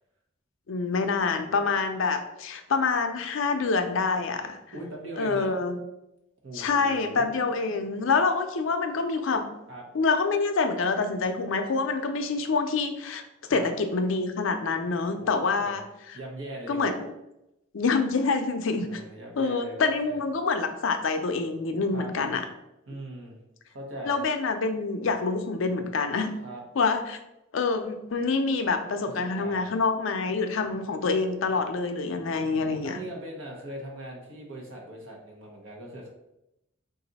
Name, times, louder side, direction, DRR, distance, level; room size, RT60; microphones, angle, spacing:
voice 1, 0.7-4.6 5.2-5.8 6.5-9.6 9.9-13.2 13.5-16.2 16.7-17.1 17.7-19.0 19.4-22.4 24.1-26.4 26.8-27.2 27.5-33.0, left 4 dB, 70° left, 7 dB, 0.5 m, -26 dB
voice 2, 4.7-5.6 6.4-7.4 9.7-9.8 13.4-13.7 15.2-15.8 16.1-17.0 18.8-20.2 21.9-22.1 22.9-23.4 23.7-24.2 26.4-26.6 29.2-29.7 32.6-36.1, right 1 dB, 70° right, -1 dB, 1.1 m, -40 dB
3.9 x 2.5 x 4.0 m, 0.87 s
head